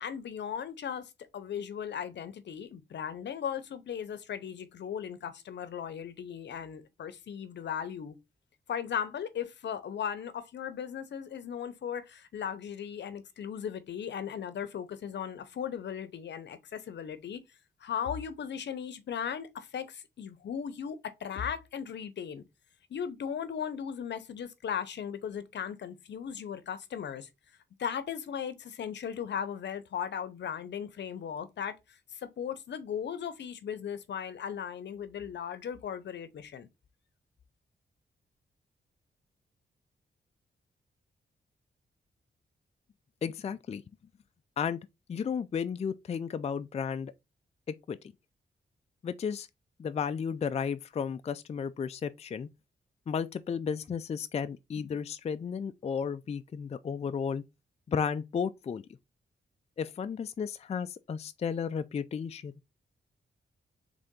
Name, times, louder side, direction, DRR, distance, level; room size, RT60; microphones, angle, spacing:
voice 1, 0.0-8.1 8.7-17.4 17.8-22.4 22.9-27.3 27.8-36.7, left 8 dB, 70° left, 0.7 m, -37 dB
voice 2, 43.2-43.8 44.6-47.1 47.7-48.0 49.0-49.5 49.8-52.5 53.1-57.4 57.9-58.8 59.8-62.5, left 6 dB, 35° left, 0.4 m, -33 dB
3.8 x 3.4 x 3.6 m
cardioid pair, 70°, 19 cm